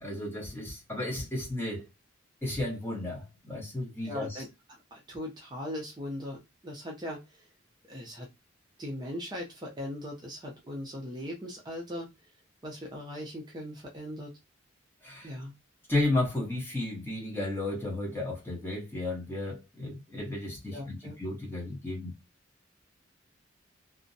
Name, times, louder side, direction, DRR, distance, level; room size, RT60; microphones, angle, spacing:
voice 1, 0.0-1.9 2.4-4.4 15.0-15.3 15.9-22.1, left 2 dB, 10° left, 0.8 m, -33 dB
voice 2, 4.0-4.5 4.9-7.5 7.9-8.3 8.8-12.1 12.6-14.3 15.2-15.5 20.7-21.2, left 1 dB, 20° right, 0.5 m, -39 dB
2.6 x 2.0 x 2.5 m
head